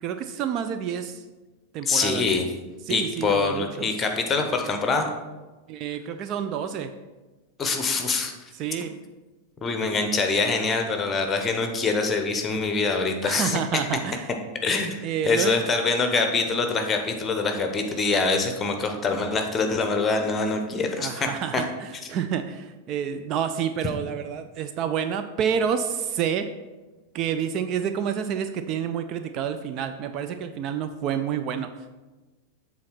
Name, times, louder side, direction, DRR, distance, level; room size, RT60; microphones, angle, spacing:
voice 1, 0.0-1.2 1.7-2.2 2.9-3.9 5.7-6.9 8.5-8.9 13.2-14.3 15.0-15.6 21.0-26.5 27.1-31.9, right 8 dB, 35° right, 8 dB, 0.4 m, -29 dB
voice 2, 1.9-2.4 2.9-5.1 7.6-8.3 9.6-13.6 14.6-21.6, left 4 dB, 20° left, 5 dB, 1.0 m, -24 dB
7.5 x 4.1 x 5.8 m, 1.2 s
figure-of-eight pair, 90°, 0 cm